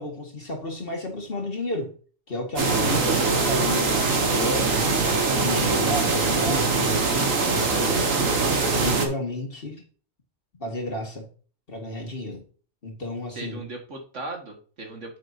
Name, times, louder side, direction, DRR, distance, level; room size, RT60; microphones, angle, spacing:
voice 1, 0.0-1.9 2.3-5.1 5.4-8.3 8.7-9.8 10.6-11.3 11.7-12.4 12.8-13.6, left 1 dB, 45° left, 2.1 m, -32 dB
sound 1, 2.6-9.1, right 4 dB, 85° right, 2.0 m, -22 dB
voice 2, 13.3-15.2, right 2 dB, 65° right, 2.2 m, -38 dB
9.1 x 7.4 x 2.8 m
omnidirectional pair, 1.3 m